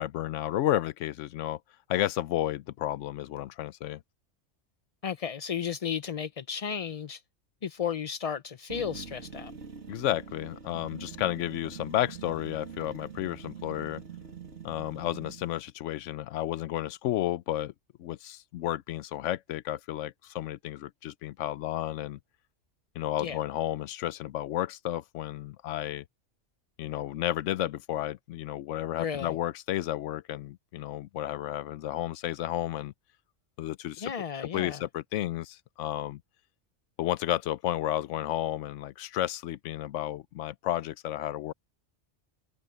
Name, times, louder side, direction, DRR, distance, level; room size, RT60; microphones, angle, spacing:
voice 1, 0.0-1.6 1.9-4.0 9.9-14.0 14.6-17.7 18.0-22.2 23.0-26.0 26.8-32.9 33.6-34.1 34.5-36.2 37.0-41.5, left 13 dB, 90° left, 0.9 m, -32 dB
voice 2, 5.0-7.2 7.6-9.5 23.2-23.4 29.0-29.3 34.0-34.8, left 7 dB, 45° left, 0.5 m, -34 dB
sound 1, 8.7-15.5, right 6 dB, 70° right, 2.6 m, -44 dB
omnidirectional pair, 1.2 m